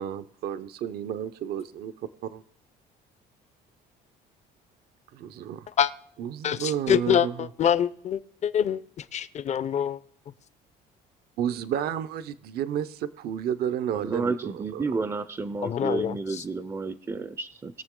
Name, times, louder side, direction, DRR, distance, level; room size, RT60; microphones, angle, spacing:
voice 1, 0.0-1.9 2.3-2.4 5.1-5.7 6.2-7.5 11.4-14.8, right 9 dB, 70° right, 13 dB, 0.7 m, -31 dB
voice 2, 6.4-8.8 9.1-10.0 15.6-16.2, left 9 dB, 45° left, 15 dB, 0.6 m, -25 dB
voice 3, 13.9-17.8, right 3 dB, 20° right, 13 dB, 0.5 m, -31 dB
20.5 x 6.9 x 3.7 m, 0.63 s
cardioid pair, 110°, 17 cm